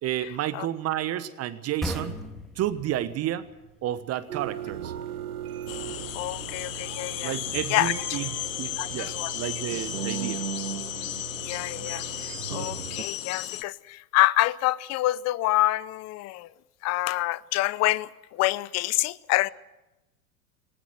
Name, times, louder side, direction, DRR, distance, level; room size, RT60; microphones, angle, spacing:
voice 1, 0.0-2.1 2.6-3.5 3.8-4.9 7.2-8.3 8.6-10.4, right 12 dB, 35° right, 14 dB, 1.2 m, -31 dB
sound 1, 1.8-5.2, equal, ahead, 3.3 m, -38 dB
sound 2, 4.3-13.0, right 10 dB, 80° right, 1.2 m, -37 dB
sound 3, 5.7-13.6, left 14 dB, 60° left, 1.3 m, -35 dB
voice 2, 6.1-7.4 7.7-8.2 8.8-9.3 11.4-16.5 16.8-19.5, left 18 dB, 35° left, 20 dB, 0.8 m, -27 dB
20.0 x 19.5 x 7.9 m, 1.0 s
figure-of-eight pair, 90°, 44 cm